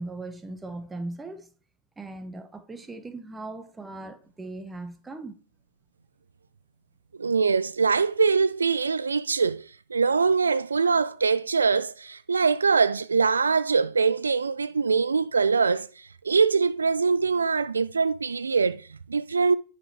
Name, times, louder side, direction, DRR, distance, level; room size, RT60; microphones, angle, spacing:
voice 1, 0.0-1.5 2.0-5.4, right 2 dB, 10° right, 1.2 m, -38 dB
voice 2, 7.2-19.6, right 5 dB, 75° right, 0.3 m, -23 dB
9.8 x 5.3 x 4.9 m
figure-of-eight pair, 90°, 0 cm